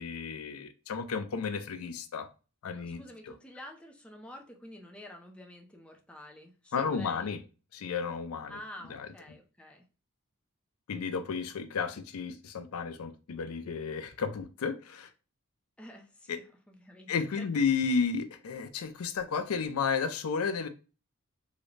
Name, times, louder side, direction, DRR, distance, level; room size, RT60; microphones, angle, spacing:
voice 1, 0.0-2.3 2.6-3.3 6.7-7.4 7.7-8.6 8.9-9.1 10.9-15.1 16.3-16.4 17.1-20.7, left 5 dB, 80° left, 9 dB, 0.4 m, -32 dB
voice 2, 2.7-7.3 8.5-9.8 15.8-16.3 16.7-17.5, left 1 dB, 5° left, 1 dB, 0.5 m, -49 dB
3.7 x 2.1 x 3.1 m, 0.33 s
head